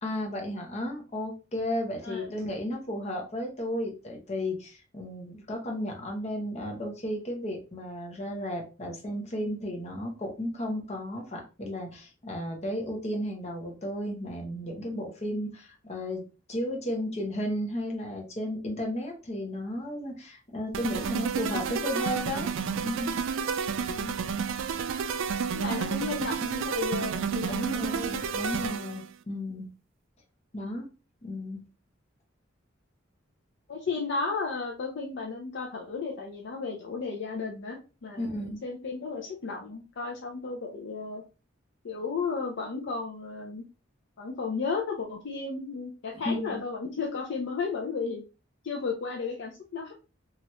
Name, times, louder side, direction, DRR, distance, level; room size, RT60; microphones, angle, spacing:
voice 1, 0.0-16.2 16.5-22.5 22.8-23.2 27.5-29.7 30.5-30.9 31.2-31.6 38.2-38.6 46.2-46.6, left 1 dB, 35° left, 1 dB, 0.8 m, -34 dB
sound 1, 20.7-29.1, right 6 dB, 70° right, 0.3 m, -31 dB
voice 2, 23.7-24.2 25.5-28.2 33.7-41.2 41.8-43.6 44.2-48.2 48.6-49.9, left 4 dB, 60° left, 1 dB, 0.5 m, -34 dB
2.9 x 2.4 x 3.0 m, 0.32 s
head